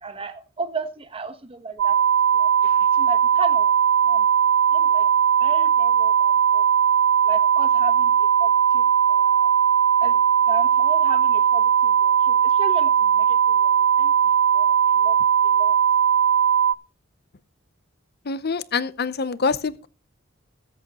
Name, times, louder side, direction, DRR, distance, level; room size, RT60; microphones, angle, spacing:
voice 1, 0.0-2.0 2.3-3.7 4.0-4.3 4.7-5.1 5.4-6.7 7.2-9.5 10.0-10.2 10.5-15.2 15.4-15.7, right 3 dB, 30° right, 1.1 m, -35 dB
sound 1, 1.8-16.7, right 8 dB, 80° right, 0.5 m, -18 dB
voice 2, 18.2-19.9, left 4 dB, 55° left, 0.7 m, -25 dB
20.5 x 8.0 x 3.0 m
head